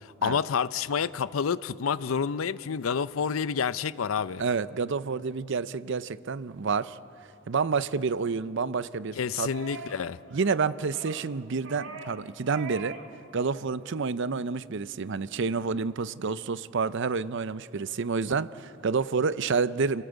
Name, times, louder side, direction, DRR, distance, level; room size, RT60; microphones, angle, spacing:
voice 1, 0.0-4.4 9.2-10.2, left 6 dB, 85° left, 17 dB, 0.5 m, -29 dB
voice 2, 4.4-7.0 7.5-9.5 10.3-13.0 13.3-20.0, right 5 dB, 65° right, 16 dB, 0.6 m, -29 dB
sound 1, 9.5-10.0 10.3-10.5 10.9-11.3 11.6-12.2 12.5-13.1 13.4-13.5, right 4 dB, 80° right, 1.8 m, -41 dB
29.5 x 18.0 x 8.1 m, 2.7 s
head